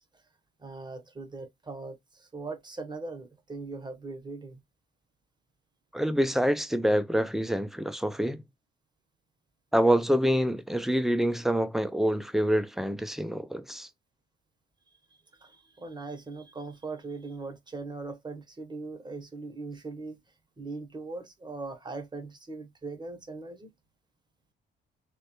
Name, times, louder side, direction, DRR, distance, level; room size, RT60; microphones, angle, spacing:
voice 1, 0.6-4.6 15.4-20.2 20.6-23.7, right 3 dB, 20° right, 0.8 m, -40 dB
voice 2, 5.9-8.4 9.7-13.9, equal, ahead, 0.3 m, -26 dB
3.1 x 2.1 x 2.9 m
cardioid pair, 90°, 20 cm